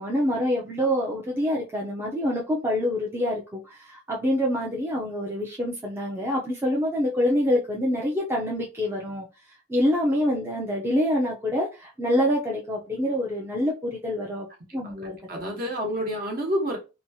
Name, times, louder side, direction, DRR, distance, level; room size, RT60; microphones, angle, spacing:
voice 1, 0.0-9.3 9.7-14.5 14.7-15.4, equal, 10° right, 0.5 m, -26 dB
voice 2, 14.8-16.8, equal, 45° right, 1.0 m, -29 dB
2.9 x 2.3 x 2.7 m
head